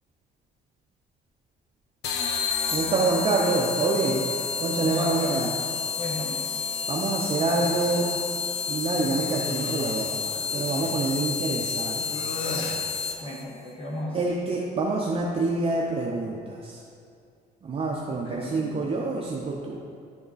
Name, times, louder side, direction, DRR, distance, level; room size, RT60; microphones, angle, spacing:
sound 1, 2.0-13.4, left 6 dB, 85° left, 0.7 m, -30 dB
voice 1, 2.7-4.3 4.6-5.5 6.9-8.2 8.7-12.0 14.1-16.8 17.6-19.8, right 3 dB, 35° right, -2 dB, 0.7 m, -26 dB
voice 2, 4.8-5.4 6.0-6.4 13.2-14.3 18.1-18.7, left 1 dB, 30° left, -4 dB, 1.2 m, -34 dB
sound 2, 7.6-8.1 8.9-11.0 12.0-12.9, left 2 dB, 55° left, 0.9 m, -37 dB
10.5 x 3.6 x 4.0 m, 2.3 s
cardioid pair, 110°, 17 cm